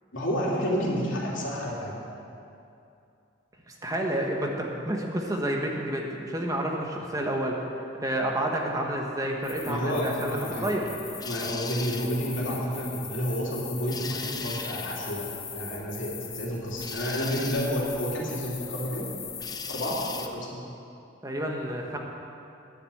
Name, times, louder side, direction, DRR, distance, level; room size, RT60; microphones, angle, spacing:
voice 1, 0.1-1.9 9.7-11.0 11.2-15.2 15.5-19.0 19.7-20.5, equal, 85° left, -4 dB, 3.0 m, -30 dB
voice 2, 3.7-7.6 8.0-10.9 21.2-22.0, right 1 dB, 20° right, 0 dB, 1.3 m, -29 dB
sound 1, 9.4-20.3, left 6 dB, 20° left, 0.6 m, -38 dB
10.0 x 9.5 x 8.5 m, 2.6 s
head